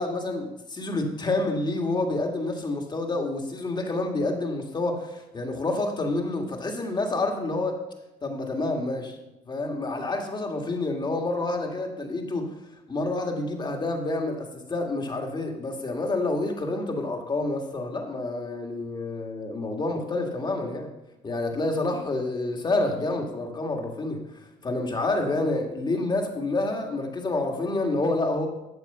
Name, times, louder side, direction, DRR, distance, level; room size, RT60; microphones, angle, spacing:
voice 1, 0.0-7.8 8.2-9.2 9.5-12.5 12.9-20.9 21.2-24.2 24.6-28.5, left 2 dB, 25° left, 3 dB, 2.0 m, -28 dB
11.5 x 7.1 x 5.5 m, 0.93 s
cardioid pair, 110°, 17 cm